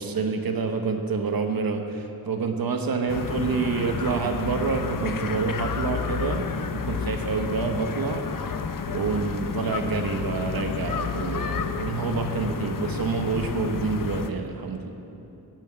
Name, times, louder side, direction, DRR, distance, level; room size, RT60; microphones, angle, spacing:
voice 1, 0.0-8.2 8.9-14.9, right 4 dB, 75° right, 5 dB, 1.1 m, -27 dB
sound 1, 3.1-14.3, left 6 dB, 65° left, 0.7 m, -31 dB
16.5 x 6.0 x 8.6 m, 2.9 s
wide cardioid pair, 145°, 36 cm